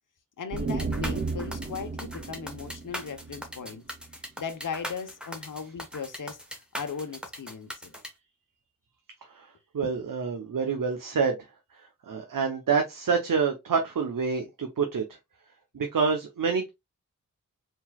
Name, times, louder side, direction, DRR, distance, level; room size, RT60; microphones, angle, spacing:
voice 1, 0.4-3.8 4.1-7.9, left 6 dB, 70° left, 0.9 m, -38 dB
sound 1, 0.5-4.1, right 4 dB, 30° right, 0.5 m, -34 dB
sound 2, 0.6-8.1, equal, 5° right, 1.2 m, -39 dB
voice 2, 9.3-11.4 11.7-15.0 15.7-16.7, right 5 dB, 80° right, 0.9 m, -27 dB
4.6 x 3.8 x 2.3 m
wide cardioid pair, 95°, 33 cm